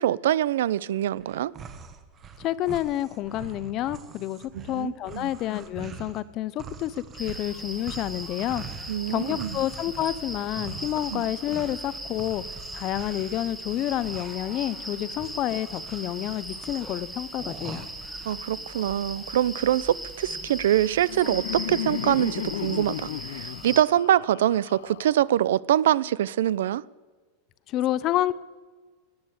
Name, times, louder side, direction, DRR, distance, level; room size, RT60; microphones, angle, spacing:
voice 1, 0.0-1.5 4.5-5.3 8.9-9.6 11.1-11.3 18.3-26.8, right 12 dB, 85° right, 0.5 m, -24 dB
sound 1, 1.2-6.2 6.6-18.4, right 5 dB, 25° right, 1.1 m, -44 dB
voice 2, 2.4-8.6 9.1-12.4 12.7-17.9 27.7-28.3, left 13 dB, 35° left, 0.6 m, -29 dB
sound 2, 7.2-23.8, right 1 dB, ahead, 1.2 m, -39 dB
Laughter, 20.6-25.6, left 12 dB, 80° left, 0.5 m, -35 dB
18.5 x 8.8 x 8.0 m
supercardioid pair, 160°, 0 cm